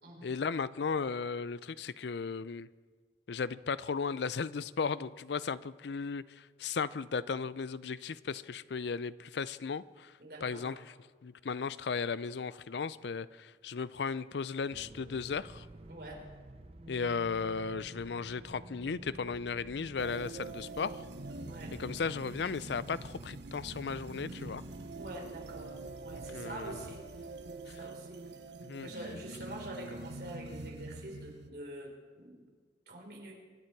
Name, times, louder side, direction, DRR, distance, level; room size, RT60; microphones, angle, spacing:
voice 1, 0.2-2.7 3.3-10.1 10.4-10.8 11.2-15.7 16.9-21.0 21.8-24.6 26.1-26.8 27.7-27.8 28.6-28.9, left 5 dB, 75° left, 17 dB, 0.5 m, -36 dB
voice 2, 10.2-10.8 15.9-16.3 21.5-21.8 24.9-27.1 27.7-28.2 28.8-32.5 32.9-33.4, right 1 dB, 60° right, 0 dB, 3.7 m, -45 dB
sound 1, 14.7-28.1, right 1 dB, 35° right, 0.6 m, -51 dB
sound 2, 20.0-31.5, right 2 dB, 75° right, 0.9 m, -45 dB
25.0 x 10.5 x 4.7 m, 1.5 s
head